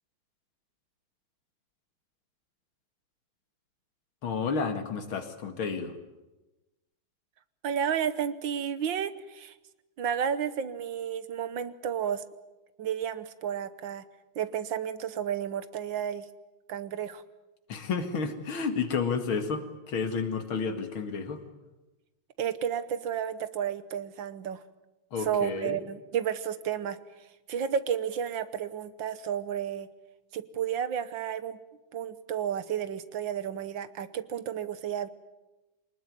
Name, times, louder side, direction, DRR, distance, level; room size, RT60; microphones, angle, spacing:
voice 1, 4.2-5.9 17.7-21.4 25.1-25.8, left 5 dB, 75° left, 7 dB, 2.8 m, -31 dB
voice 2, 7.6-9.5 10.0-12.2 12.8-14.0 14.3-16.3 16.7-17.2 22.4-24.6 25.2-27.0 27.5-29.9 30.3-31.6 31.9-35.1, right 8 dB, 70° right, 13 dB, 1.7 m, -32 dB
24.0 x 20.0 x 9.4 m, 1.1 s
omnidirectional pair, 2.3 m